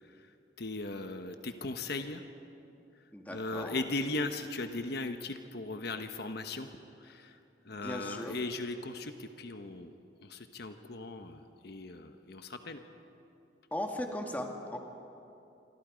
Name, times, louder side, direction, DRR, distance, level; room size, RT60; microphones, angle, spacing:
voice 1, 0.6-2.2 3.3-6.7 7.0-7.4 7.6-9.9 10.2-12.8, left 2 dB, 60° left, 7 dB, 1.1 m, -38 dB
voice 2, 3.1-3.8 7.7-8.4 13.7-14.8, left 1 dB, 10° left, 2 dB, 2.0 m, -38 dB
27.0 x 25.0 x 5.2 m, 2.8 s
head